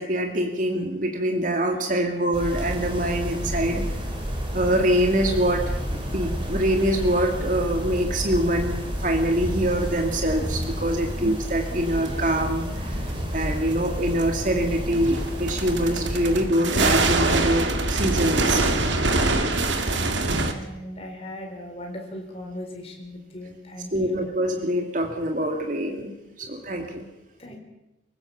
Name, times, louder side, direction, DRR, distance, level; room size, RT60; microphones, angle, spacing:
voice 1, 0.0-3.8 4.5-5.6 6.1-13.1 13.3-18.6 23.9-27.1, right 1 dB, 45° right, 3 dB, 2.5 m, -24 dB
sound 1, 2.3-16.5, equal, 25° right, 4.6 m, -30 dB
sound 2, 10.6-10.7 12.1-12.2 14.2-14.3 14.9-20.5, right 2 dB, 80° right, 2.0 m, -24 dB
voice 2, 19.7-24.2 26.4-26.8 27.4-27.6, left 1 dB, 30° left, 1 dB, 4.2 m, -39 dB
25.0 x 16.0 x 7.1 m, 0.93 s
head